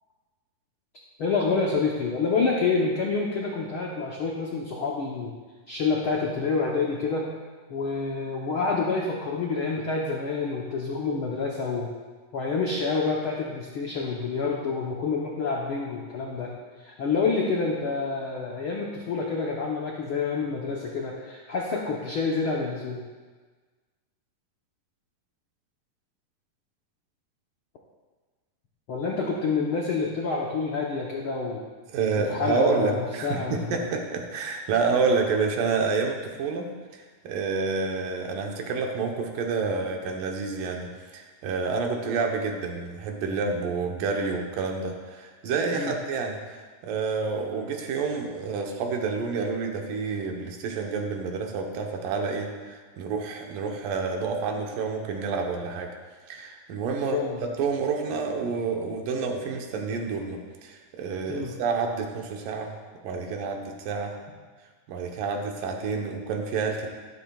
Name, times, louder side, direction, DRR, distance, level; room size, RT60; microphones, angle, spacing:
voice 1, 1.2-5.3 5.7-7.3 7.7-11.9 12.3-16.5 16.8-23.0 28.9-31.6 32.2-33.9 45.7-45.9 57.0-57.4 61.3-61.5, left 4 dB, 80° left, -2 dB, 1.1 m, -28 dB
voice 2, 31.9-55.9 56.3-57.2 57.6-62.7 63.0-64.1 64.9-66.9, right 4 dB, 85° right, 2 dB, 2.7 m, -29 dB
13.0 x 12.0 x 2.4 m, 1.4 s
omnidirectional pair, 3.8 m